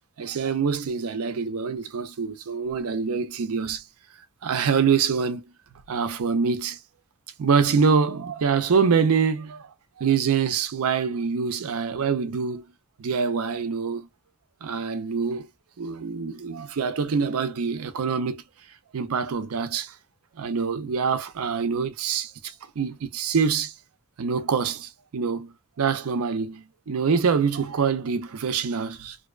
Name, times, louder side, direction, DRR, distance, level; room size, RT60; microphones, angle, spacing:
voice 1, 0.2-3.8 4.4-5.4 5.9-6.8 7.4-9.7 10.0-12.7 13.0-14.1 14.6-15.5 15.8-18.4 18.9-20.0 20.4-23.7 24.2-29.2, right 6 dB, 75° right, 0.5 m, -25 dB
2.6 x 2.1 x 2.3 m
head